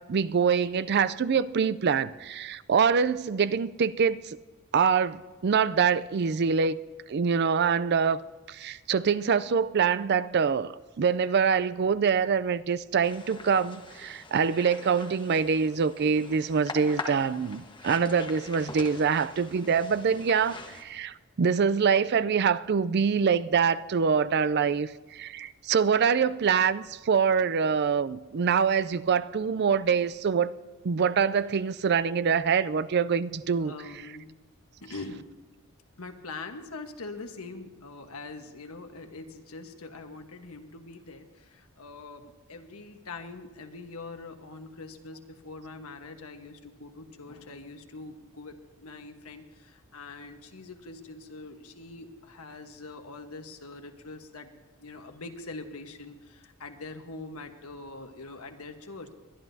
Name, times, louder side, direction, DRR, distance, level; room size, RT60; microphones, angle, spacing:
voice 1, 0.0-4.4 4.7-6.8 7.1-8.2 8.5-30.5 30.8-33.7, right 6 dB, 50° right, 0.4 m, -25 dB
sound 1, 13.0-20.8, left 3 dB, 20° left, 1.3 m, -43 dB
voice 2, 33.6-34.4 34.8-35.3 36.0-59.1, left 3 dB, 85° left, 1.3 m, -43 dB
22.5 x 11.0 x 2.7 m
head